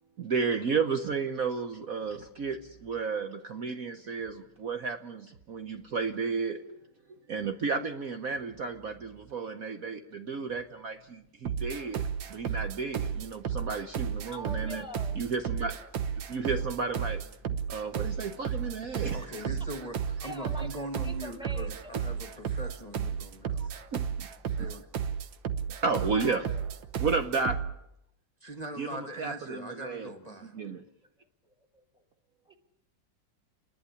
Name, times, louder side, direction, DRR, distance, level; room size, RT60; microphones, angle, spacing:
voice 1, 0.3-6.8 7.3-14.8 15.1-17.2 17.7-19.2 23.6-24.3 25.8-26.5 27.0-27.7 28.8-30.1 30.5-30.8, right 5 dB, 55° right, 7 dB, 1.3 m, -33 dB
sound 1, 11.5-27.8, right 7 dB, 85° right, 1.8 m, -33 dB
voice 2, 14.3-15.2 19.0-19.1 20.2-22.3 23.6-23.7 25.9-26.6 31.4-32.0 32.5-32.6, left 1 dB, ahead, 3 dB, 2.4 m, -45 dB
voice 3, 17.5-18.3 19.1-23.7 24.6-24.9 28.4-30.5, right 1 dB, 25° left, 5 dB, 1.4 m, -42 dB
30.0 x 11.0 x 9.8 m, 0.80 s
omnidirectional pair, 2.0 m